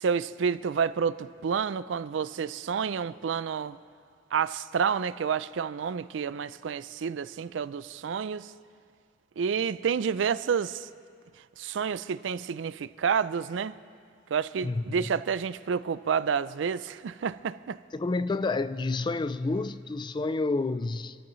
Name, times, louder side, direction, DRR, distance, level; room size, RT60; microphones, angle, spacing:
voice 1, 0.0-3.8 4.3-8.5 9.4-10.9 11.6-13.7 14.3-17.8, right 6 dB, 80° right, 0.4 m, -29 dB
voice 2, 17.9-21.2, left 3 dB, 25° left, 0.3 m, -29 dB
27.5 x 13.5 x 3.1 m
head